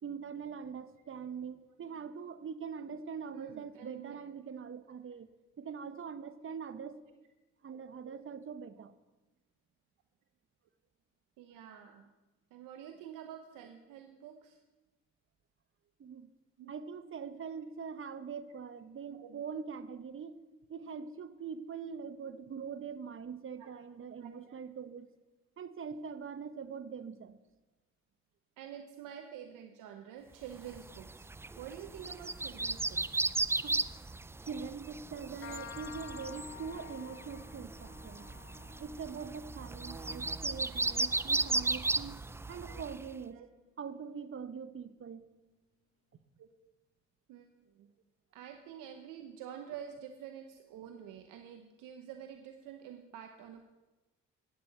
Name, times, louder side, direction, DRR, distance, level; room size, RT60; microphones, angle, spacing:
voice 1, 0.0-5.3 5.6-7.0 7.6-8.9 16.0-16.3 16.7-20.3 20.7-25.1 25.6-27.4 33.6-33.8 34.4-38.3 38.8-42.2 42.5-43.4 43.8-45.3, right 6 dB, 40° right, 12 dB, 0.9 m, -43 dB
voice 2, 3.3-4.2 7.6-8.1 11.4-12.1 12.5-14.6 16.6-16.7 19.1-19.4 23.6-23.7 24.2-24.6 28.6-31.3 31.6-33.3 42.6-42.8 43.3-43.5 46.4-46.5 47.3-47.9 48.3-53.6, right 9 dB, 75° right, 5 dB, 1.0 m, -48 dB
sound 1, 30.6-43.1, right 3 dB, 10° right, 0.3 m, -36 dB
sound 2, 35.4-42.8, left 10 dB, 40° left, 0.6 m, -52 dB
9.1 x 8.0 x 7.9 m, 1.1 s
supercardioid pair, 55°, 32 cm